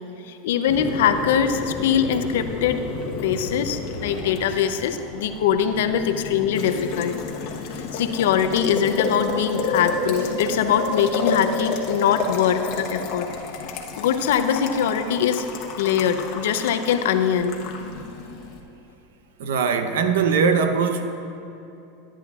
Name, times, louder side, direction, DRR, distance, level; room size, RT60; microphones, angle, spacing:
voice 1, 0.3-2.8 3.1-7.2 7.8-13.3 14.0-15.5 15.8-17.5, left 8 dB, 80° left, 9 dB, 0.6 m, -22 dB
Boiling, 0.7-18.6, left 4 dB, 55° left, 1.0 m, -31 dB
voice 2, 19.4-21.1, right 5 dB, 80° right, 8 dB, 0.7 m, -21 dB
13.0 x 9.9 x 2.4 m, 2.8 s
supercardioid pair, 120°, 0 cm